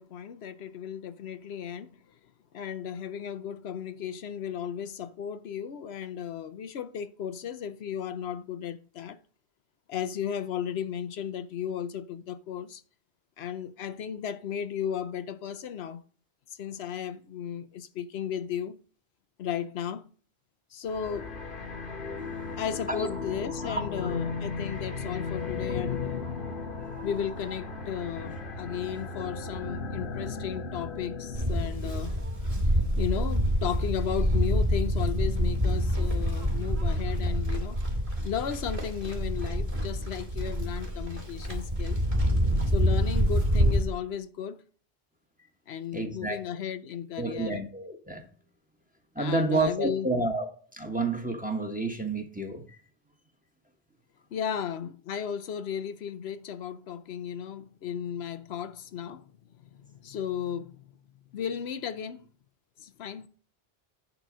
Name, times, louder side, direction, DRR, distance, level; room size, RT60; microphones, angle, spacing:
voice 1, 0.0-2.0 2.5-9.2 9.9-12.8 13.4-16.0 16.5-18.8 19.4-20.1 20.7-21.3 22.6-26.3 27.0-32.1 32.6-37.8 38.2-42.0 42.7-44.6 45.7-47.6 49.2-50.1 54.3-59.3 59.7-60.8 61.3-62.2 62.8-63.3, left 8 dB, 85° left, 0.9 m, -35 dB
sound 1, 20.9-31.7, left 4 dB, 55° left, 1.3 m, -36 dB
voice 2, 23.6-24.1 26.8-27.1 29.0-29.1 30.5-30.6 45.9-46.4 47.2-48.3 49.1-52.6, right 2 dB, 10° right, 1.2 m, -30 dB
Livestock farm animals working animals, 31.3-43.8, equal, 35° right, 2.3 m, -27 dB
11.0 x 4.0 x 6.1 m
omnidirectional pair, 1.0 m